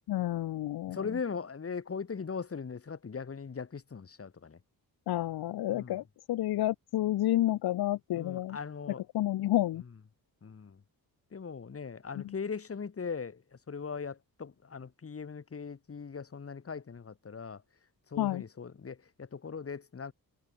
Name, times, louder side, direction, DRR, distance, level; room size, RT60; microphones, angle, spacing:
voice 1, 0.1-1.1 5.1-8.6 9.1-9.8 12.1-12.3 18.2-18.4, left 14 dB, 85° left, 0.6 m, -30 dB
voice 2, 0.9-4.6 5.7-6.0 8.1-9.0 10.4-10.8 11.3-13.4 13.7-17.6 18.1-20.1, left 5 dB, 40° left, 3.0 m, -39 dB
wide cardioid pair, 135°, 37 cm